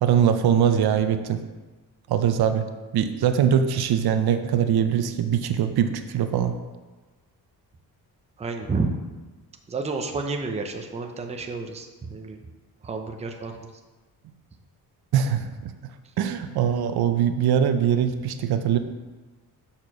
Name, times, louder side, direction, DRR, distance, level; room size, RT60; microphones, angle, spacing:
voice 1, 0.0-1.4 2.1-2.6 2.9-6.5 15.1-15.7 16.2-18.8, right 8 dB, 75° right, 8 dB, 0.6 m, -22 dB
voice 2, 8.4-9.0 9.7-12.4 12.8-13.7, right 3 dB, 15° right, 4 dB, 0.5 m, -30 dB
6.7 x 4.3 x 5.9 m, 1.3 s
wide cardioid pair, 160°, 38 cm